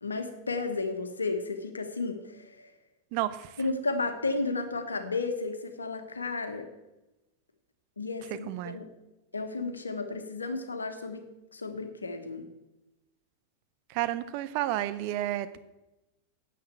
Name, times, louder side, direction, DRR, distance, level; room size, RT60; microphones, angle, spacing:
voice 1, 0.0-2.7 3.6-6.7 8.0-8.9 9.3-11.2 11.5-12.5, left 3 dB, 75° left, 7 dB, 1.4 m, -33 dB
voice 2, 3.1-3.5 8.5-8.8 13.9-15.6, right 14 dB, 45° right, 13 dB, 0.8 m, -31 dB
9.8 x 8.0 x 7.8 m, 1.0 s
figure-of-eight pair, 90°, 0 cm